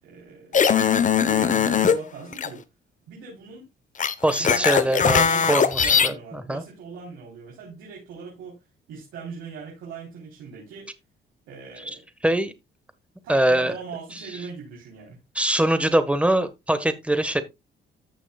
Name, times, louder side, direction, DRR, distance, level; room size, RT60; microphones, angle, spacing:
voice 1, 0.0-0.8 1.2-2.7 3.1-3.7 4.4-4.9 5.2-8.6 8.9-10.9 11.5-12.0 13.2-15.2, right 5 dB, 90° right, 3.7 m, -40 dB
sound 1, 0.5-2.0 2.3-2.5 4.0-6.1, left 7 dB, 40° left, 1.0 m, -20 dB
voice 2, 4.2-6.6 12.2-12.5 13.3-13.7 15.3-17.4, right 1 dB, 5° right, 1.4 m, -23 dB
14.5 x 6.1 x 2.4 m
cardioid pair, 90°, 20 cm